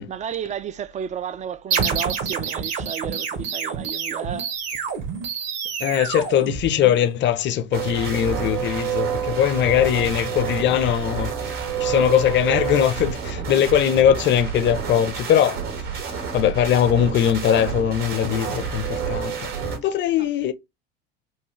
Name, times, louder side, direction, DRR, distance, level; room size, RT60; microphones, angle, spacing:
voice 1, 0.0-4.5, right 8 dB, 25° right, 0.4 m, -32 dB
sound 1, 1.7-7.1, right 6 dB, 55° right, 1.3 m, -28 dB
voice 2, 5.8-11.3 11.8-15.6 16.3-19.5 19.8-20.5, left 10 dB, 40° left, 0.6 m, -20 dB
sound 2, 7.7-19.8, right 7 dB, 70° right, 2.1 m, -28 dB
4.5 x 2.6 x 3.1 m
hypercardioid pair, 70°, 30 cm